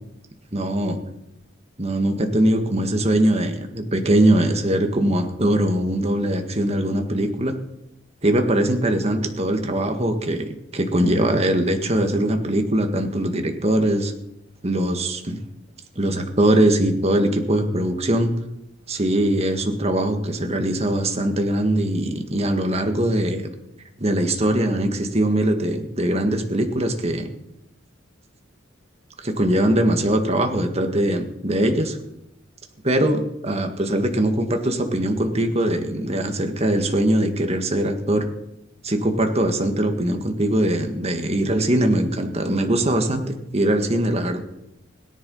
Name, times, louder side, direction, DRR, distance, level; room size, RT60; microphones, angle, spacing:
voice 1, 0.5-1.0 1.8-7.5 8.2-14.1 14.6-15.4 15.9-18.3 18.9-23.5 24.0-27.3 29.2-32.0 32.8-38.3 38.8-44.4, right 1 dB, 30° right, 5 dB, 1.7 m, -21 dB
17.5 x 10.5 x 5.5 m, 0.85 s
head